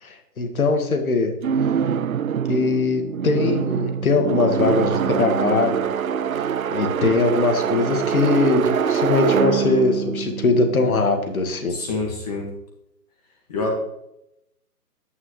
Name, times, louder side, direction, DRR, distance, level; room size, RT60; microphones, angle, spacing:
voice 1, 0.0-1.3 2.5-5.9 6.7-11.7, left 3 dB, 60° left, 5 dB, 2.0 m, -21 dB
sound 1, 1.4-11.4, right 8 dB, 60° right, 0.6 m, -24 dB
voice 2, 11.7-12.5 13.5-13.7, left 3 dB, 25° left, 0 dB, 1.7 m, -26 dB
9.6 x 9.5 x 3.2 m, 0.84 s
hypercardioid pair, 165°, 48 cm